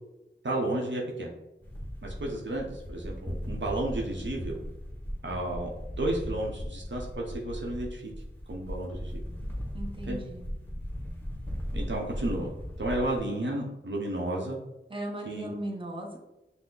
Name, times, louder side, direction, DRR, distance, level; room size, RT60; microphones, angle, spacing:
voice 1, 0.4-1.3 2.0-4.5 5.2-5.7 6.0-8.1 8.5-9.2 10.1-10.2 11.7-12.5 12.8-14.6 15.3-15.5, right 1 dB, 65° right, -2 dB, 0.8 m, -32 dB
sound 1, 1.6-13.2, equal, 10° left, 1.0 m, -37 dB
voice 2, 9.7-10.5 14.9-16.2, right 1 dB, 25° right, -1 dB, 0.9 m, -37 dB
5.6 x 2.1 x 3.8 m, 0.94 s
wide cardioid pair, 40°, 20 cm